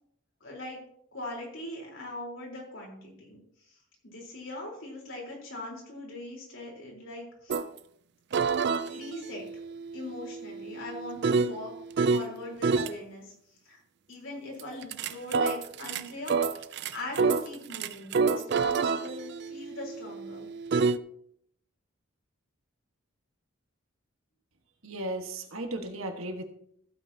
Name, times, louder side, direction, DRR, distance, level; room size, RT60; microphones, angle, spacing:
voice 1, 0.4-0.8 1.1-3.4 3.7-3.8 4.0-7.6 8.9-9.5 9.9-11.7 12.1-13.3 13.6-13.8 14.1-16.4 16.9-20.5, left 1 dB, 65° left, -2 dB, 4.0 m, -41 dB
sound 1, 7.5-7.7 8.3-12.3 12.6-12.9 14.6-21.0, right 4 dB, 50° right, 0.4 m, -28 dB
voice 2, 24.8-26.4, right 1 dB, 80° right, 5 dB, 1.5 m, -35 dB
15.5 x 8.7 x 2.8 m, 0.68 s
head